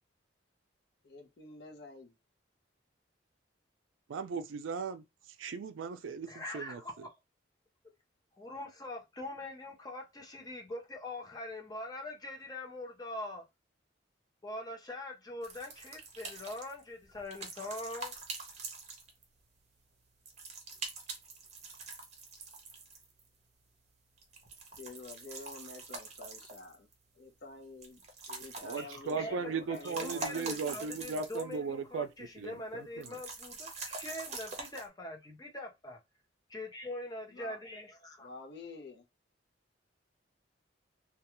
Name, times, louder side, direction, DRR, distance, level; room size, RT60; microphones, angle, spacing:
voice 1, 1.0-2.2 24.7-26.9 27.1-30.8 37.3-37.6 38.2-39.0, left 3 dB, 60° left, 0.6 m, -49 dB
voice 2, 4.1-5.0 5.4-6.8 28.6-32.1 32.4-33.1, right 5 dB, 90° right, 0.4 m, -37 dB
voice 3, 6.3-7.1 8.4-13.4 14.4-18.1 28.8-36.0 36.5-38.3, left 1 dB, 20° left, 0.6 m, -43 dB
sound 1, 15.4-19.4 20.3-23.3 24.2-26.9 27.8-29.2 29.6-31.7 31.9-32.0 33.0-34.9, right 3 dB, 35° right, 0.7 m, -44 dB
2.3 x 2.2 x 2.9 m
head